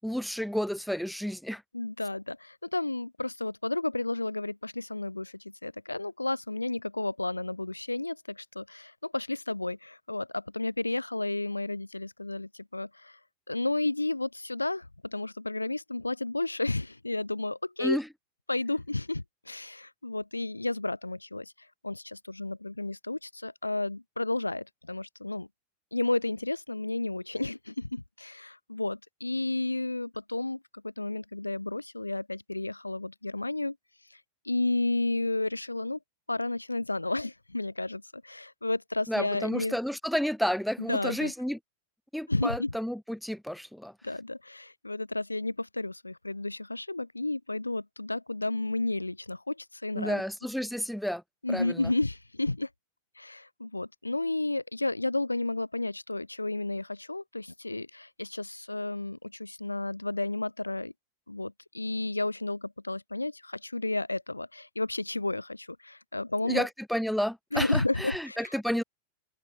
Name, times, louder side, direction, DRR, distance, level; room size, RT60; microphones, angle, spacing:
voice 1, 0.0-1.6 17.8-18.1 39.1-41.6 42.1-43.9 50.0-51.2 51.5-51.9 66.5-68.8, equal, ahead, 7.3 m, -31 dB
voice 2, 1.7-13.2 13.5-18.0 18.5-21.5 21.8-25.5 25.9-33.7 34.1-34.2 34.4-36.0 36.3-39.8 40.9-41.3 42.3-42.7 44.0-50.2 51.4-52.7 53.2-60.9 61.3-66.7 67.5-68.8, left 2 dB, 85° left, 1.3 m, -32 dB
figure-of-eight pair, 90°, 0 cm